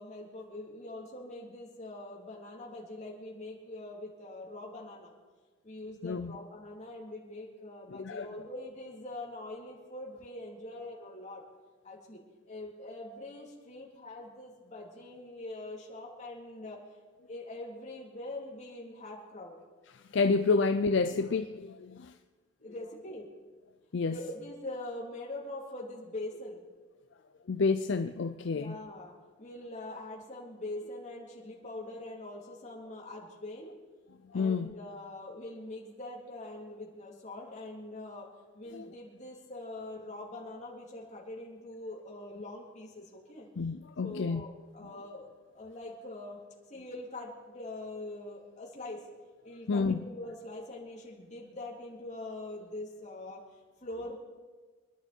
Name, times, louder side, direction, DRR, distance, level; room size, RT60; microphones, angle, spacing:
voice 1, 0.0-5.1 5.6-11.4 11.8-16.8 17.3-19.5 22.6-23.3 24.0-26.6 28.5-33.8 34.3-43.5 44.0-45.3 45.5-46.4 46.7-49.0 49.4-53.4 53.8-54.2, left 2 dB, 35° left, 3.6 m, -43 dB
voice 2, 7.9-8.3 20.1-22.1 23.9-24.2 27.5-28.8 34.3-34.7 38.7-38.9 43.6-44.4 49.7-50.0, left 4 dB, 60° left, 0.5 m, -29 dB
26.0 x 11.5 x 4.5 m
head